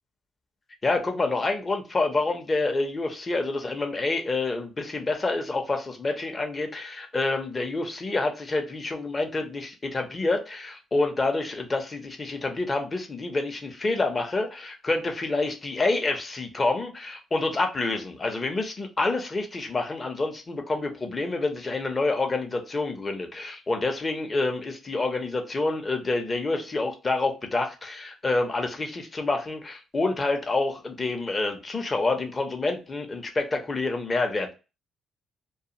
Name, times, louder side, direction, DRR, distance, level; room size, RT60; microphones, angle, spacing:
voice 1, 0.8-34.5, left 3 dB, 30° left, 4 dB, 0.7 m, -28 dB
2.3 x 2.3 x 2.8 m, 0.30 s
cardioid pair, 90°, 0 cm